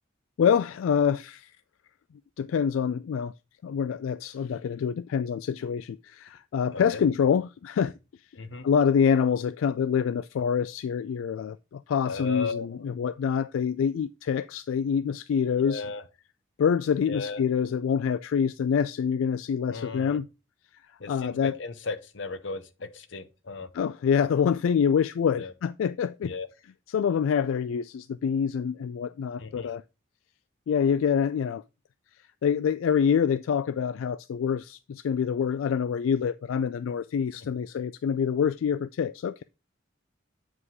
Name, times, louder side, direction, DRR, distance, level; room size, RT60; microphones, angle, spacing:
voice 1, 0.4-1.5 2.4-3.3 3.6-7.9 8.6-15.8 16.6-20.3 21.1-21.6 23.7-26.3 26.9-29.8 30.7-31.6 32.4-39.4, left 7 dB, 85° left, 0.3 m, -26 dB
voice 2, 8.3-8.7 12.0-12.7 15.6-16.0 17.1-17.4 19.7-20.2 21.0-23.7 25.3-25.5 26.2-26.5 29.4-29.7, left 4 dB, 65° left, 0.8 m, -35 dB
8.0 x 4.9 x 3.6 m
head